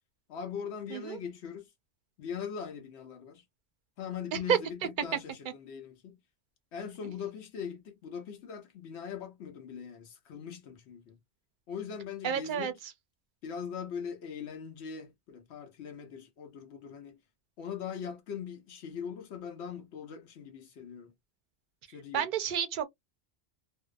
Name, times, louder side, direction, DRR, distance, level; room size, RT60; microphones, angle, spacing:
voice 1, 0.3-1.7 2.2-3.4 4.0-6.2 6.7-11.2 11.7-12.7 13.4-17.2 17.6-21.1 21.9-22.3, left 7 dB, 80° left, 0.9 m, -41 dB
voice 2, 12.2-12.7 22.1-22.8, right 8 dB, 55° right, 0.6 m, -29 dB
2.6 x 2.0 x 2.3 m
omnidirectional pair, 1.1 m